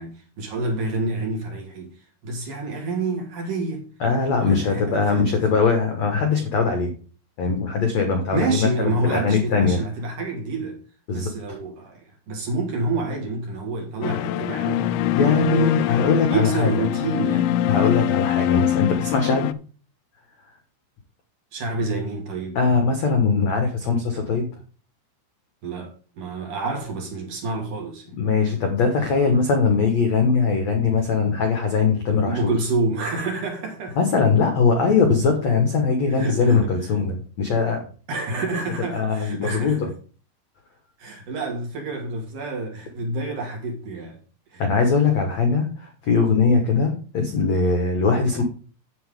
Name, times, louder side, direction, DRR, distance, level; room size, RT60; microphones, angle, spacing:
voice 1, 0.0-1.9 2.2-3.9 4.5-5.4 8.3-10.8 11.1-15.2 15.4-15.8 16.3-17.6 21.5-22.6 25.6-28.1 32.2-34.0 36.1-36.9 38.1-39.9 41.0-44.2 44.5-44.6, right 3 dB, 50° right, 3.3 m, -28 dB
voice 2, 4.0-6.9 7.4-9.8 11.1-11.6 15.1-16.7 17.7-19.5 22.6-24.5 28.2-32.5 34.0-37.8 38.9-39.9 44.6-48.4, left 4 dB, 60° left, 1.8 m, -21 dB
sound 1, 14.0-19.5, left 12 dB, 80° left, 2.8 m, -23 dB
10.0 x 8.6 x 3.8 m
omnidirectional pair, 5.5 m